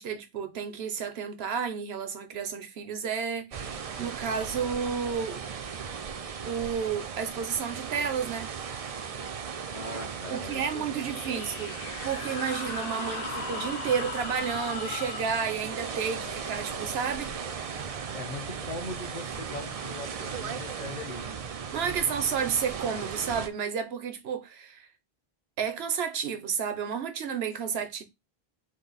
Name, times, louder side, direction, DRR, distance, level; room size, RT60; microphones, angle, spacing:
voice 1, 0.0-5.4 6.5-8.5 10.3-11.7 12.0-17.3 21.7-24.9 25.6-28.0, right 7 dB, 75° right, 1.0 m, -31 dB
sound 1, 3.5-23.5, right 6 dB, 50° right, 0.5 m, -37 dB
voice 2, 9.7-11.7 18.1-21.4, left 3 dB, 45° left, 1.1 m, -41 dB
sound 2, 10.9-18.2, left 7 dB, 70° left, 0.8 m, -40 dB
5.2 x 2.1 x 4.0 m
omnidirectional pair, 1.1 m